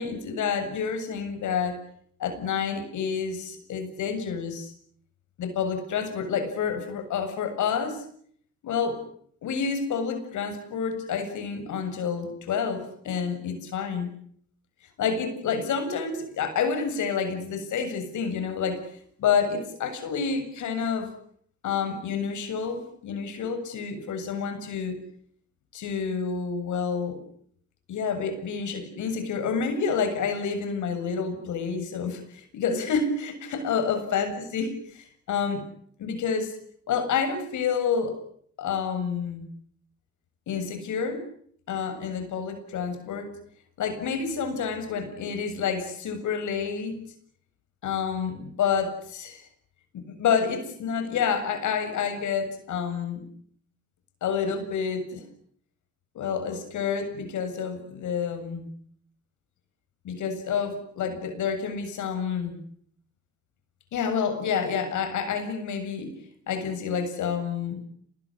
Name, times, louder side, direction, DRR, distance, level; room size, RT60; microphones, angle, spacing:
voice 1, 0.0-1.8 2.2-4.7 5.4-8.0 8.6-9.0 9.4-14.1 15.0-18.9 19.2-21.1 21.6-25.0 25.7-27.2 27.9-35.7 36.0-36.5 36.9-38.2 38.6-39.5 40.5-41.3 41.7-43.3 43.8-47.0 47.8-49.5 49.9-53.2 54.2-55.2 56.1-58.7 60.0-62.6 63.9-66.2 66.5-67.8, left 6 dB, 75° left, 7 dB, 7.4 m, -29 dB
27.5 x 20.5 x 10.0 m, 0.65 s
cardioid pair, 90°, 30 cm